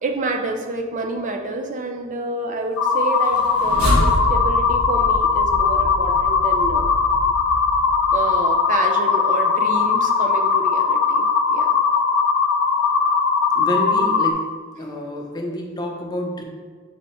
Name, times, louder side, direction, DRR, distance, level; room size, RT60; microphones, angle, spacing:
voice 1, 0.0-6.9 8.1-11.8, right 3 dB, 35° right, 3 dB, 0.4 m, -28 dB
sound 1, 2.8-14.3, left 5 dB, 80° left, 0.4 m, -19 dB
sound 2, 3.2-8.5, equal, 90° right, 1.0 m, -27 dB
voice 2, 13.6-14.4 14.8-16.4, equal, 20° left, 0 dB, 0.5 m, -28 dB
5.4 x 2.1 x 4.1 m, 1.5 s
head